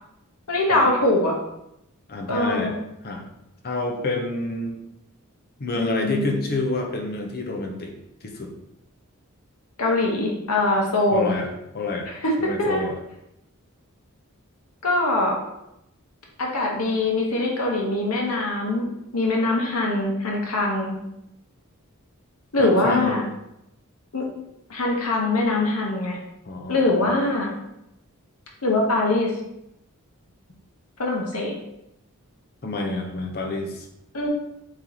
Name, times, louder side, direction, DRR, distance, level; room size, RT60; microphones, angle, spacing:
voice 1, 0.5-1.4 2.3-2.7 5.8-6.3 9.8-11.3 12.1-12.8 14.8-15.4 16.4-18.8 19.1-21.0 22.5-23.2 24.1-24.2 24.7-26.2 26.7-27.5 28.6-29.3 31.0-31.5 34.1-34.3, left 2 dB, 80° left, -1 dB, 1.0 m, -22 dB
voice 2, 2.1-2.7 3.0-3.2 3.6-4.8 5.6-7.9 8.2-8.5 11.1-12.1 12.4-12.9 22.6-23.2 26.5-27.1 32.6-33.9, left 3 dB, 45° left, 2 dB, 0.7 m, -28 dB
4.2 x 3.1 x 3.9 m, 0.84 s
head